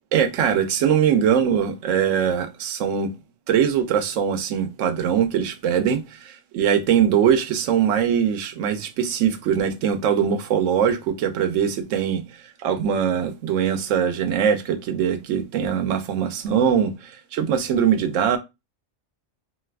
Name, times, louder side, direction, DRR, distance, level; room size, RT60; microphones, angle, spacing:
voice 1, 0.1-3.1 3.5-18.4, right 8 dB, 90° right, 0.9 m, -22 dB
2.6 x 2.3 x 3.2 m
omnidirectional pair, 1.3 m